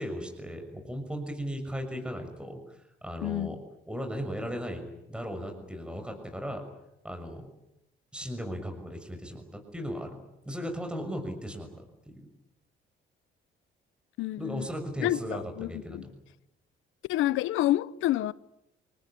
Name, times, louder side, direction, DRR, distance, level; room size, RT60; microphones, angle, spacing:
voice 1, 0.0-3.6 3.9-6.6 7.0-7.5 8.1-10.2 10.4-12.3 14.4-16.1, equal, 5° right, 6.4 m, -37 dB
voice 2, 3.2-3.6 14.2-14.7 15.0-16.1 17.1-18.3, left 14 dB, 90° left, 0.9 m, -28 dB
28.0 x 19.5 x 9.9 m
cardioid pair, 90°, 20 cm